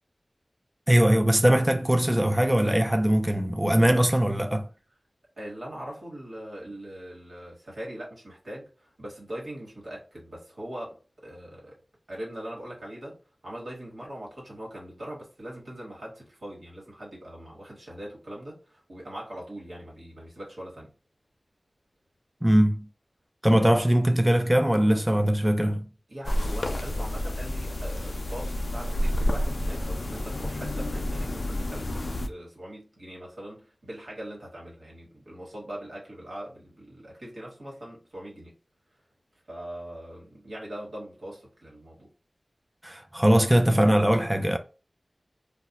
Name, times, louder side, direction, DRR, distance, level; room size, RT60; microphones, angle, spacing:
voice 1, 0.9-4.7 22.4-22.9 23.4-25.9 42.8-44.6, right 1 dB, 10° right, 0.3 m, -21 dB
voice 2, 5.4-11.8 12.1-13.2 13.4-20.9 26.1-38.5 39.5-42.1, right 1 dB, 90° right, 1.2 m, -41 dB
sound 1, 26.2-32.3, left 1 dB, 70° left, 0.4 m, -29 dB
2.3 x 2.0 x 3.8 m
wide cardioid pair, 65°, 0 cm